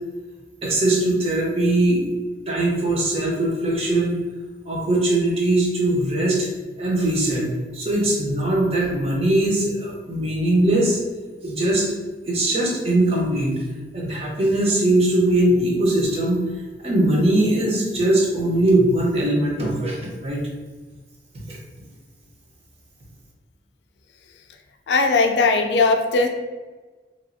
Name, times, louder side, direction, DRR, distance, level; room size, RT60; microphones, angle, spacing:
voice 1, 0.6-2.1 2.5-4.2 4.7-6.5 6.8-7.5 7.7-11.0 11.4-11.9 12.3-13.6 13.9-16.4 16.8-20.4 21.5-21.6, right 1 dB, 35° right, -2 dB, 0.7 m, -20 dB
voice 2, 24.9-26.3, left 3 dB, 70° left, 5 dB, 0.3 m, -18 dB
3.0 x 2.4 x 2.6 m, 1.3 s
head